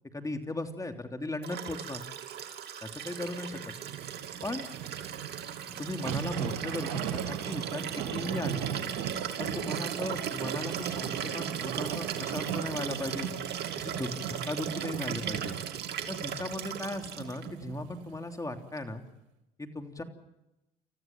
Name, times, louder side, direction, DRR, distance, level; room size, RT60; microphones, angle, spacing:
voice 1, 0.1-2.0 2.8-3.6 4.4-4.7 5.7-8.6 9.4-13.3 13.8-15.5 16.1-19.0 19.6-20.0, left 2 dB, 20° left, 5 dB, 3.2 m, -37 dB
Liquid, 1.4-17.5 18.8-18.9, right 8 dB, 60° right, 2.6 m, -38 dB
sound 1, 3.7-18.2 18.6-18.7, right 10 dB, 85° right, 1.8 m, -38 dB
29.5 x 15.0 x 7.4 m, 0.92 s
supercardioid pair, 70°, 19 cm